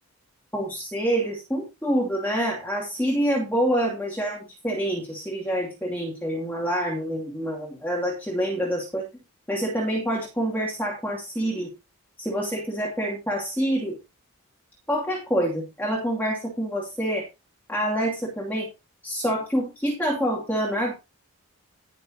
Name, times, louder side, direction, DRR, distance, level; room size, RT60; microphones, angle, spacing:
voice 1, 0.5-9.1 9.5-11.7 12.2-14.0 14.9-17.3 17.7-18.7 19.0-20.9, equal, 10° left, -3 dB, 2.6 m, -26 dB
19.5 x 6.6 x 2.8 m, 0.25 s
head